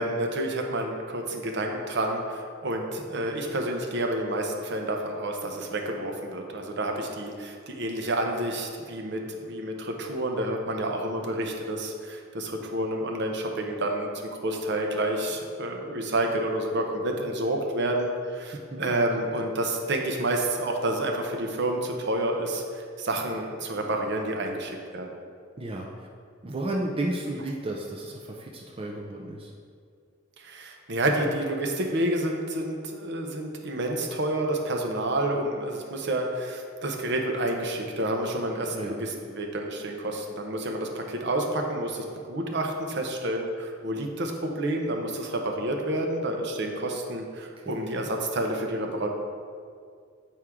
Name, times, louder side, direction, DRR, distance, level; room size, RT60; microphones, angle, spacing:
voice 1, 0.0-14.1 14.4-22.6 23.0-25.1 30.4-49.1, right 1 dB, 60° right, 2 dB, 0.8 m, -29 dB
voice 2, 18.5-18.9 25.6-26.1 26.4-29.5 38.7-39.1 47.6-48.1, right 1 dB, 30° right, -1 dB, 0.5 m, -33 dB
8.1 x 4.6 x 3.6 m, 2.2 s
head